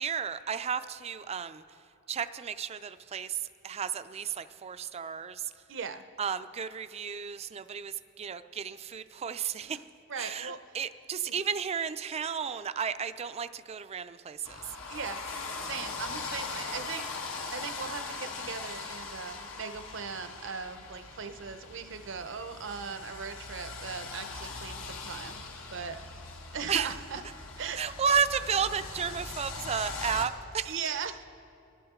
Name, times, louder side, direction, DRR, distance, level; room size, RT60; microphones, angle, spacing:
voice 1, 0.0-1.6 2.1-5.5 6.2-9.8 10.2-14.7 26.7-26.9 27.8-30.8, right 7 dB, 30° right, 11 dB, 0.4 m, -33 dB
voice 2, 5.7-6.0 9.7-9.8 10.1-10.6 11.3-11.4 14.9-15.2 15.7-17.1 17.5-25.4 25.7-26.0 26.5-27.2 27.6-27.9 30.7-31.2, right 6 dB, 65° right, 10 dB, 0.7 m, -38 dB
sound 1, 14.4-30.3, left 4 dB, 80° left, 1.2 m, -40 dB
23.5 x 11.0 x 3.6 m, 2.6 s
head